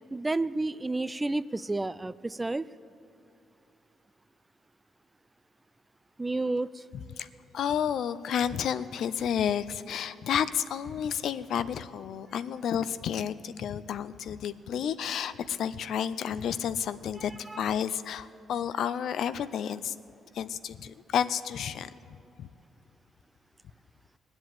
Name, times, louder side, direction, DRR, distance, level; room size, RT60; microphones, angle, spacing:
voice 1, 0.1-2.7 6.2-6.8 17.5-17.6, right 2 dB, 15° right, 16 dB, 0.3 m, -30 dB
voice 2, 6.9-7.3 7.5-20.0 20.3-21.9 22.4-22.5, left 8 dB, 70° left, 14 dB, 0.5 m, -31 dB
19.5 x 8.0 x 7.7 m, 2.7 s
cardioid pair, 90°, 0 cm